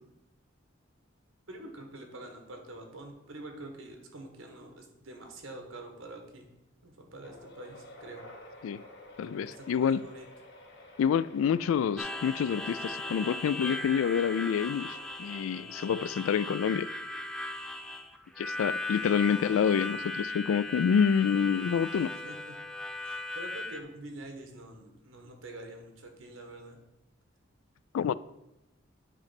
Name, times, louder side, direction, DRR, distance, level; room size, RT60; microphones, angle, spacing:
voice 1, 1.5-6.5 6.8-8.2 9.5-10.2 22.1-22.5 23.0-26.8, right 1 dB, 85° right, 4 dB, 1.4 m, -46 dB
sound 1, 7.2-16.0, left 1 dB, 55° left, 1.4 m, -51 dB
voice 2, 9.2-10.0 11.0-16.9 18.4-22.1 27.9-28.1, left 7 dB, 85° left, 18 dB, 0.3 m, -27 dB
Harmonica, 12.0-23.8, left 2 dB, 5° left, 0.3 m, -38 dB
8.9 x 3.2 x 5.8 m, 0.91 s
head